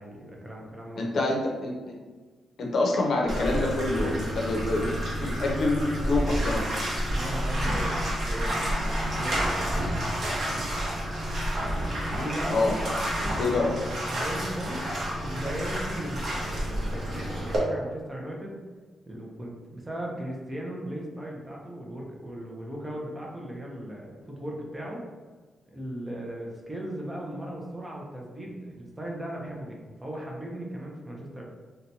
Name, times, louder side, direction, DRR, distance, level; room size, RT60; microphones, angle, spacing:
voice 1, 0.0-1.2 7.1-9.9 10.4-10.7 11.6-12.8 13.3-13.7 14.1-14.8 15.2-18.6 19.1-25.1 25.7-31.4, right 1 dB, 15° right, -2 dB, 0.6 m, -37 dB
voice 2, 1.0-1.7 2.6-6.6 12.5-12.7 13.4-13.7, left 2 dB, 55° left, -1 dB, 0.7 m, -26 dB
Bathtub (filling or washing), 3.3-17.6, equal, 50° right, 0.8 m, -29 dB
2.8 x 2.2 x 4.0 m, 1.3 s
wide cardioid pair, 140°, 0 cm